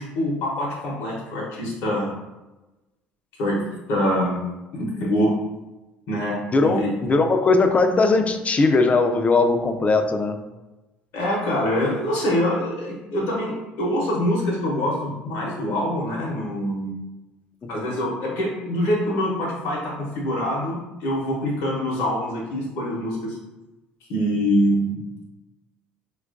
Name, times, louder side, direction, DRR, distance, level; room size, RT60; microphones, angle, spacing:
voice 1, 0.0-2.1 3.4-4.4 4.7-5.4 6.1-6.4 6.6-6.9 11.1-16.9 17.7-23.4 24.1-25.2, equal, 65° left, -4 dB, 0.8 m, -24 dB
voice 2, 6.5-10.4 17.6-17.7, left 3 dB, 30° left, 6 dB, 0.4 m, -19 dB
4.3 x 2.3 x 2.4 m, 1.1 s
hypercardioid pair, 70°, 5 cm